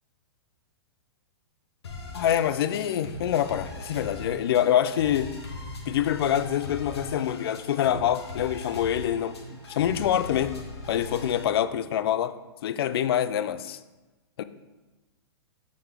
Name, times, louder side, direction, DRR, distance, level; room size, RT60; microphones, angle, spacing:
sound 1, 1.8-11.4, left 2 dB, 85° left, 1.3 m, -40 dB
voice 1, 2.1-5.3 5.9-10.6 10.9-12.3 12.6-13.8 14.4-14.5, left 10 dB, 70° left, 13 dB, 0.4 m, -25 dB
7.3 x 3.9 x 3.3 m, 1.1 s
hypercardioid pair, 125°, 13 cm